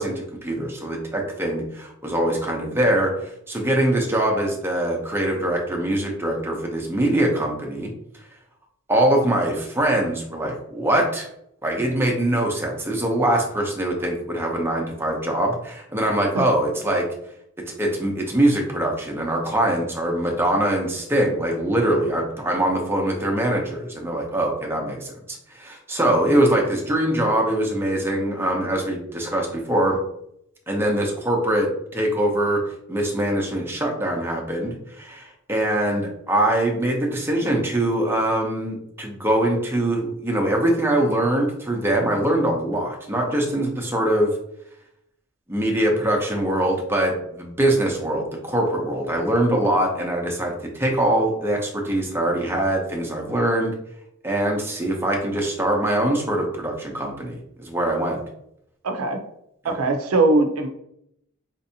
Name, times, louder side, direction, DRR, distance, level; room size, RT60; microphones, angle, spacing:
voice 1, 0.0-3.1 3.5-7.9 8.9-11.3 11.6-17.1 17.7-25.1 25.5-30.0 30.7-32.6 32.9-44.3 45.5-53.7 54.2-58.2 59.6-59.7, right 1 dB, 10° right, 0 dB, 0.6 m, -23 dB
voice 2, 58.8-59.2 59.6-60.7, right 2 dB, 90° right, 6 dB, 0.5 m, -20 dB
4.3 x 2.6 x 2.7 m, 0.75 s
head